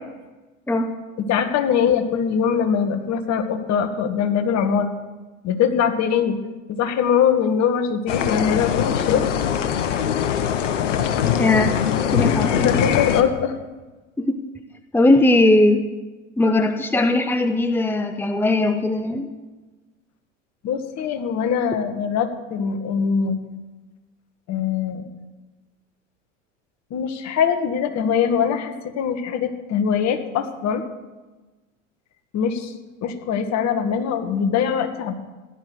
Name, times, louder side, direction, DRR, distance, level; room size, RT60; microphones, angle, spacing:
voice 1, 1.2-4.9 5.4-6.4 6.7-9.2 12.5-13.6 20.6-23.4 24.5-25.1 26.9-30.8 32.3-32.7 33.0-35.1, left 7 dB, 45° left, 7 dB, 2.0 m, -22 dB
sound 1, 8.1-13.2, left 8 dB, 70° left, 1.5 m, -22 dB
voice 2, 11.4-11.8 12.1-12.7 14.2-14.4 14.9-15.8 16.4-19.3, left 2 dB, 5° left, 8 dB, 0.9 m, -19 dB
16.5 x 11.5 x 6.4 m, 1.2 s
hypercardioid pair, 85°, 38 cm